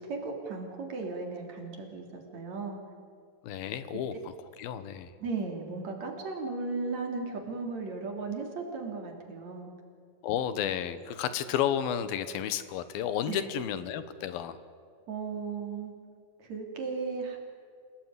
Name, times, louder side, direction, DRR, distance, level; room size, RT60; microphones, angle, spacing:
voice 1, 0.1-2.8 5.2-9.7 13.3-13.4 15.1-15.9 16.4-17.4, right 4 dB, 50° right, 2 dB, 4.4 m, -36 dB
voice 2, 3.4-5.1 10.2-14.6, left 9 dB, 85° left, 13 dB, 3.0 m, -32 dB
27.5 x 18.0 x 9.7 m, 2.2 s
omnidirectional pair, 4.2 m